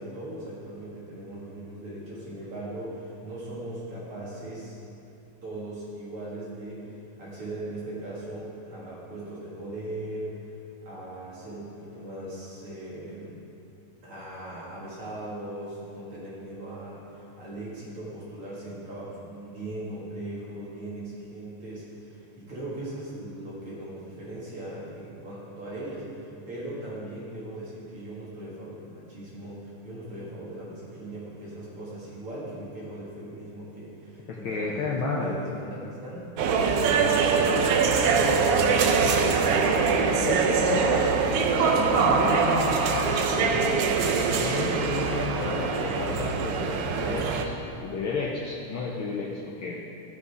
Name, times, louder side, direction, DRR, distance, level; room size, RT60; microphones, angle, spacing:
voice 1, 0.0-4.8 5.4-6.9 7.2-10.4 10.8-13.4 14.0-36.6 36.9-39.6, right 1 dB, 50° right, -7 dB, 2.9 m, -39 dB
voice 2, 34.3-35.5 40.2-43.7 44.3-49.8, left 4 dB, 85° left, -3 dB, 1.1 m, -32 dB
sound 1, 36.4-47.4, right 5 dB, 85° right, 1.2 m, -23 dB
15.0 x 6.6 x 4.9 m, 2.7 s
omnidirectional pair, 3.5 m